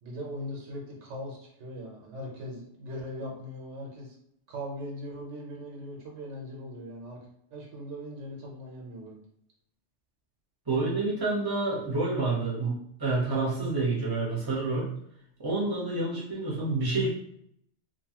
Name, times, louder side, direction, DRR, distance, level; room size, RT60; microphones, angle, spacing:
voice 1, 0.0-4.2 4.5-7.2 7.5-9.2, equal, 85° right, -1 dB, 1.1 m, -40 dB
voice 2, 10.7-14.9 15.4-17.1, right 3 dB, 20° right, -5 dB, 0.8 m, -28 dB
2.7 x 2.3 x 2.8 m, 0.72 s
omnidirectional pair, 1.2 m